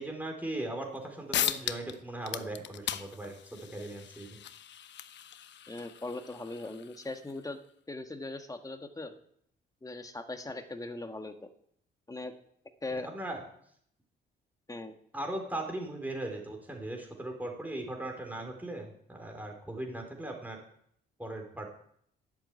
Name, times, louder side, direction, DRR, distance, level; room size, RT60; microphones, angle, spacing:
voice 1, 0.0-4.4 12.9-13.4 15.1-20.6 21.2-21.7, right 1 dB, 10° right, 2 dB, 4.4 m, -38 dB
sound 1, 1.0-1.1 1.3-2.0 2.2-7.4, left 10 dB, 65° left, 0.9 m, -37 dB
voice 2, 5.7-7.6 7.9-9.1 9.8-11.5 12.1-12.3 12.8-13.1 14.7-14.9, left 2 dB, 15° left, 7 dB, 1.6 m, -39 dB
12.0 x 8.3 x 9.6 m, 0.68 s
cardioid pair, 90°, 20 cm